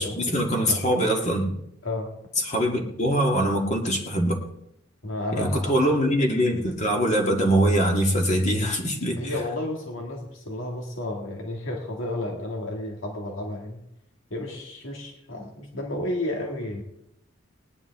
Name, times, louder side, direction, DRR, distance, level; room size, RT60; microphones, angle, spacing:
voice 1, 0.0-1.5 2.4-4.4 5.4-9.3, equal, 35° left, 1 dB, 1.8 m, -23 dB
voice 2, 5.0-5.8 9.2-13.8 14.3-16.8, left 1 dB, 85° left, 1 dB, 1.9 m, -32 dB
19.5 x 10.5 x 3.6 m, 0.77 s
head